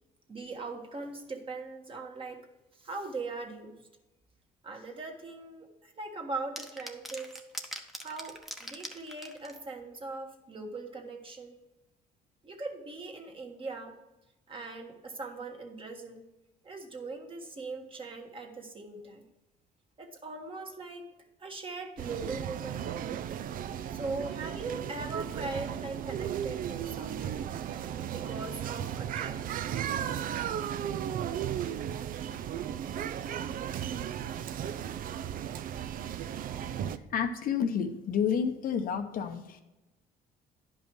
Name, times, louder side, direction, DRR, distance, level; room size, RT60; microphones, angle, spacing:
voice 1, 0.3-2.4 2.7-3.8 4.6-7.3 8.0-11.6 12.4-13.9 14.5-16.2 16.6-19.2 20.0-21.0 21.4-22.9 23.9-27.5 28.1-29.5, right 3 dB, 30° right, 3 dB, 1.6 m, -40 dB
sound 1, 6.6-9.6, equal, ahead, 1.0 m, -41 dB
sound 2, 22.0-37.0, right 9 dB, 55° right, 0.5 m, -35 dB
voice 2, 37.1-39.6, left 7 dB, 60° left, 7 dB, 0.9 m, -30 dB
10.5 x 5.5 x 4.6 m, 1.0 s
cardioid pair, 110°, 17 cm